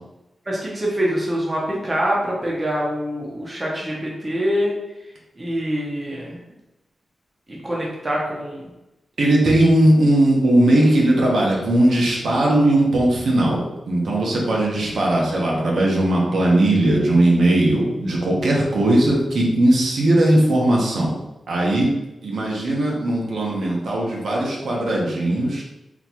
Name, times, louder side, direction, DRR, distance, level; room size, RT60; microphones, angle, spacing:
voice 1, 0.5-4.7 5.4-6.4 7.5-8.7, equal, 20° right, -4 dB, 0.8 m, -25 dB
voice 2, 9.2-21.1 21.5-21.9 22.2-25.6, right 1 dB, 75° right, -3 dB, 1.0 m, -18 dB
4.0 x 3.1 x 2.9 m, 0.97 s
wide cardioid pair, 170°, 0 cm